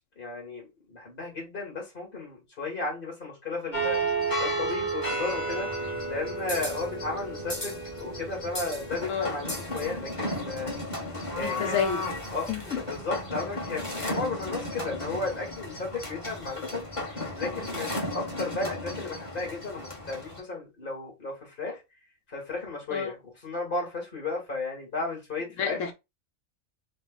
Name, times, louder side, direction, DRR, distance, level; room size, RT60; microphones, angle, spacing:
voice 1, 0.2-4.0 4.4-5.7 6.1-10.7 11.4-11.9 12.3-21.8 22.3-25.8, left 3 dB, 45° left, 2.5 m, -34 dB
sound 1, 3.7-20.4, right 1 dB, 25° left, 1.6 m, -33 dB
voice 2, 11.4-12.0 12.5-12.6 22.9-23.1 25.6-25.9, left 7 dB, 85° left, 1.0 m, -29 dB
5.1 x 2.4 x 4.0 m
omnidirectional pair, 1.3 m